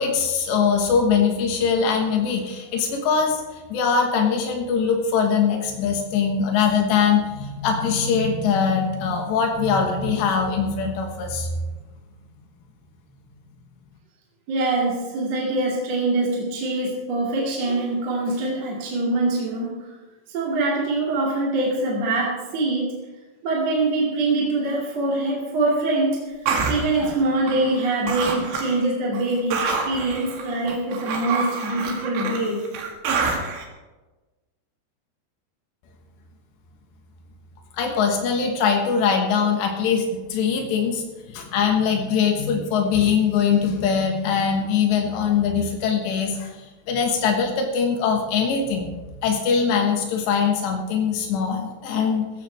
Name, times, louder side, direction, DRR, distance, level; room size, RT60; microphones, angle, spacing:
voice 1, 0.0-11.5 37.7-48.9 49.2-52.2, left 6 dB, 90° left, 2 dB, 3.7 m, -22 dB
voice 2, 14.5-19.8 20.3-22.9 23.4-26.2 26.7-32.7, right 2 dB, 45° right, -4 dB, 3.2 m, -24 dB
sound 1, 26.5-27.8 28.1-28.8 29.1-33.6, right 4 dB, 80° right, 4.1 m, -27 dB
16.0 x 15.5 x 3.4 m, 1.2 s
omnidirectional pair, 4.9 m